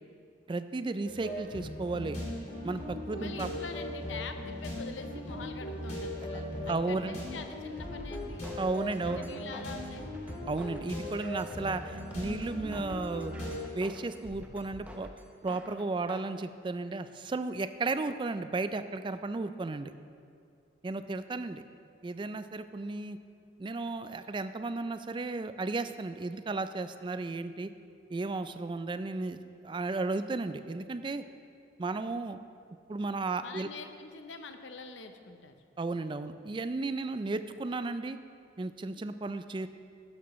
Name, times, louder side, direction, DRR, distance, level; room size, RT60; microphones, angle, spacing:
voice 1, 0.5-2.2 2.6-3.5 6.3-7.2 8.6-9.3 10.5-13.3 13.7-15.1 15.4-19.9 20.8-21.6 22.0-23.2 23.6-27.7 28.1-31.2 31.8-32.4 32.9-33.7 35.8-38.2 38.6-39.7, right 3 dB, 25° right, 11 dB, 0.3 m, -34 dB
sound 1, 1.0-13.6, left 1 dB, 40° left, 2.3 m, -39 dB
voice 2, 3.1-8.4 9.0-10.1 33.4-35.5, left 4 dB, 75° left, 7 dB, 0.7 m, -44 dB
sound 2, 7.8-16.3, equal, 10° right, 0.7 m, -48 dB
12.0 x 10.5 x 3.1 m, 2.3 s
head